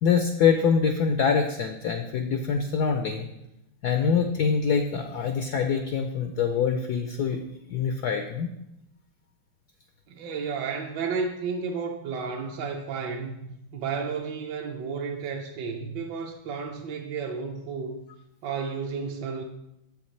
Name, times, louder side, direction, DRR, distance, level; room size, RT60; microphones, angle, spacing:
voice 1, 0.0-3.3 3.8-7.4 7.7-8.5, left 6 dB, 80° left, 5 dB, 0.9 m, -24 dB
voice 2, 10.1-18.0 18.4-19.4, right 5 dB, 70° right, 1 dB, 1.1 m, -32 dB
7.9 x 7.0 x 3.2 m, 0.85 s
omnidirectional pair, 2.3 m